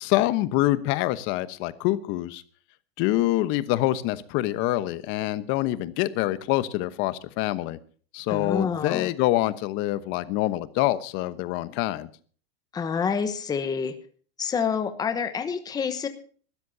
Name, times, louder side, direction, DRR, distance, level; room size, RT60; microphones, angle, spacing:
voice 1, 0.0-2.4 3.0-7.8 8.1-12.1, left 16 dB, 40° left, 14 dB, 1.1 m, -25 dB
voice 2, 8.3-9.1 12.7-13.9 14.4-16.1, left 6 dB, 10° left, 9 dB, 1.0 m, -27 dB
23.0 x 13.0 x 2.7 m, 0.43 s
supercardioid pair, 155°, 31 cm